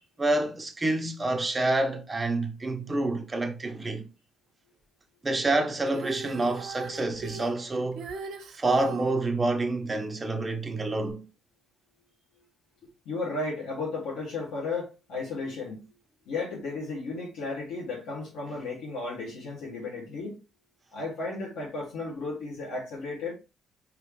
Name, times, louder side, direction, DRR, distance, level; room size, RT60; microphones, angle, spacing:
voice 1, 0.2-4.1 5.2-8.1 8.5-11.3, right 2 dB, 25° right, 1.0 m, -28 dB
Female singing, 5.9-9.1 11.1-11.2, right 5 dB, 75° right, 0.9 m, -39 dB
voice 2, 13.1-15.8 16.3-20.4 20.9-23.3, left 3 dB, 90° left, 2.2 m, -34 dB
4.9 x 3.3 x 3.1 m
cardioid pair, 90°, 0 cm